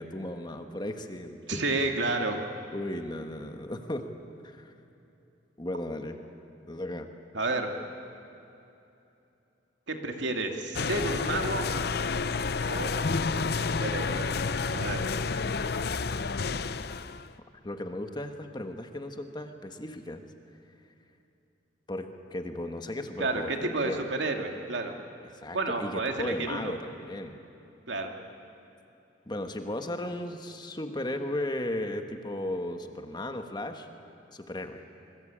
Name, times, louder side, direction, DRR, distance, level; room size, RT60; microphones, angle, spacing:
voice 1, 0.0-1.6 2.7-4.1 4.4-4.7 5.6-6.2 6.7-7.1 17.6-20.2 21.9-24.0 25.3-27.4 29.3-33.9 34.3-34.8, left 1 dB, 25° left, 6 dB, 1.4 m, -35 dB
voice 2, 1.5-2.4 7.3-7.7 9.9-11.7 12.7-12.9 13.4-14.3 14.7-15.1 23.2-24.9 25.5-26.7 27.9-28.1, right 2 dB, 80° right, 3 dB, 2.4 m, -31 dB
sound 1, 10.7-17.3, left 4 dB, 55° left, 0.6 m, -30 dB
26.0 x 20.5 x 8.7 m, 2.8 s
head